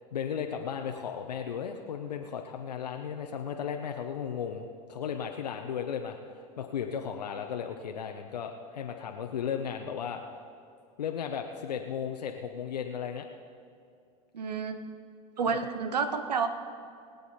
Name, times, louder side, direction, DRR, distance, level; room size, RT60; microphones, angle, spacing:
voice 1, 0.1-6.2 6.6-10.2 11.0-13.2 15.5-15.6, left 7 dB, 85° left, 4 dB, 0.8 m, -35 dB
voice 2, 14.3-14.8 15.4-16.5, right 5 dB, 85° right, 9 dB, 1.1 m, -29 dB
22.0 x 8.4 x 4.2 m, 2.4 s
hypercardioid pair, 85°, 20 cm